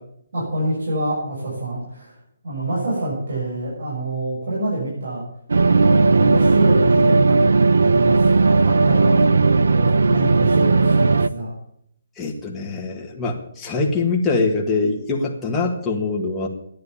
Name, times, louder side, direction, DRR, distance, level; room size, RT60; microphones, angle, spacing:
voice 1, 0.3-2.2 2.4-5.2 6.0-9.3 9.5-11.5, right 1 dB, 65° right, -5 dB, 6.9 m, -26 dB
sound 1, 5.5-11.3, right 3 dB, 85° right, 0.6 m, -16 dB
voice 2, 12.2-16.5, left 3 dB, 10° left, -3 dB, 1.8 m, -23 dB
12.5 x 10.5 x 7.0 m, 0.69 s
hypercardioid pair, 165°, 0 cm